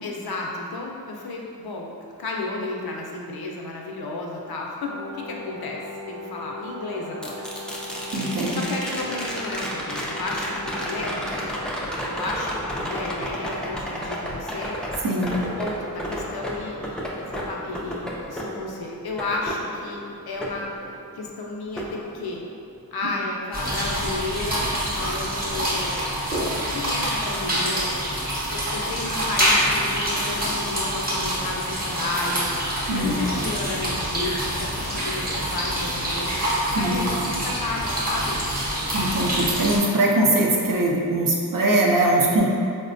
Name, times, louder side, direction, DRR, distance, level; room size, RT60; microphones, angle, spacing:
voice 1, 0.0-1.9 2.2-5.8 6.1-7.5 8.5-15.1 15.6-20.7 21.1-22.4 22.9-26.1 26.7-28.3 28.5-36.4 36.8-38.4, left 2 dB, 70° left, -1 dB, 0.5 m, -32 dB
Brass instrument, 4.8-11.8, left 1 dB, 85° right, 1.0 m, -38 dB
sound 1, 7.2-21.3 21.8-22.8 25.0-25.1, equal, ahead, 0.3 m, -32 dB
voice 2, 8.1-8.6 15.0-15.4 32.9-33.2 36.7-37.3 38.9-42.5, right 1 dB, 60° right, -2 dB, 0.5 m, -21 dB
sound 2, 23.5-39.8, equal, 25° right, 0.8 m, -26 dB
4.0 x 2.1 x 2.5 m, 2.3 s
wide cardioid pair, 80°, 38 cm